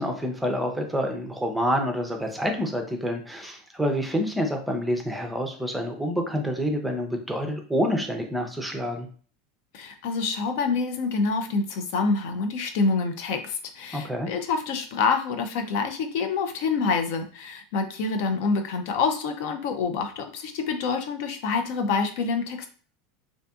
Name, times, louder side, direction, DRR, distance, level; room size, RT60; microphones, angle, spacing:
voice 1, 0.0-9.1 13.9-14.3, equal, 5° right, 3 dB, 0.5 m, -27 dB
voice 2, 9.7-22.7, left 4 dB, 65° left, 6 dB, 0.4 m, -27 dB
2.6 x 2.5 x 2.3 m, 0.42 s
supercardioid pair, 125°, 0 cm